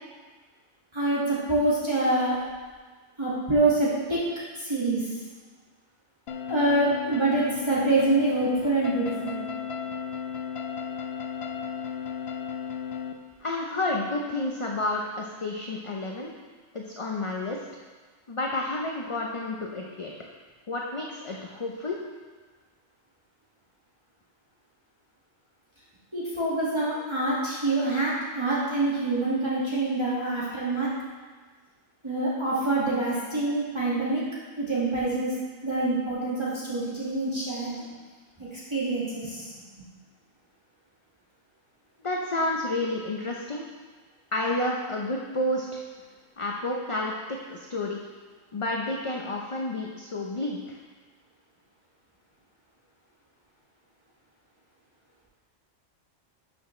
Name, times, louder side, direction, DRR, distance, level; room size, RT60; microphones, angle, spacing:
voice 1, 0.9-2.4 3.2-4.2 4.6-5.2 6.5-9.4 26.1-30.9 32.0-34.2 34.6-35.3 35.6-37.8 38.4-39.5, right 2 dB, 20° right, -9 dB, 1.9 m, -26 dB
sound 1, 6.3-13.1, left 7 dB, 60° left, 0.8 m, -34 dB
voice 2, 13.4-16.3 16.7-17.6 18.3-20.1 20.7-22.0 42.0-43.6 44.3-45.8 46.4-48.0 48.5-50.8, left 2 dB, 35° left, -1 dB, 0.6 m, -30 dB
12.0 x 6.3 x 3.2 m, 1.4 s
omnidirectional pair, 1.3 m